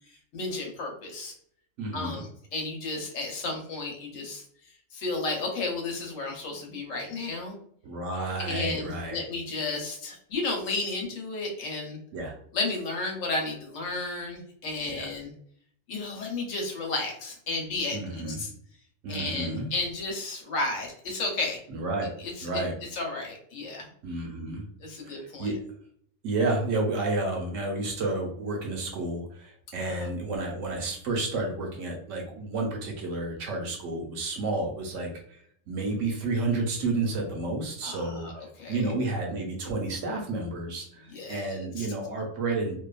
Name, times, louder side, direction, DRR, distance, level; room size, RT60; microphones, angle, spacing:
voice 1, 0.3-1.3 1.9-4.4 4.9-7.5 8.4-12.0 12.5-15.3 15.9-18.5 19.1-21.6 22.2-22.6 22.9-23.9 24.8-25.5 29.8-30.1 37.8-38.8 41.1-41.9, left 3 dB, 80° left, 0 dB, 1.1 m, -33 dB
voice 2, 1.8-2.2 7.8-9.2 12.1-12.4 15.0-15.1 17.9-18.4 19.0-19.7 21.7-22.1 22.4-22.7 24.0-24.6 25.0-25.6 26.2-35.4 35.7-38.3 38.7-42.8, right 2 dB, 75° right, 1 dB, 1.1 m, -31 dB
2.7 x 2.3 x 2.3 m, 0.64 s
omnidirectional pair, 1.3 m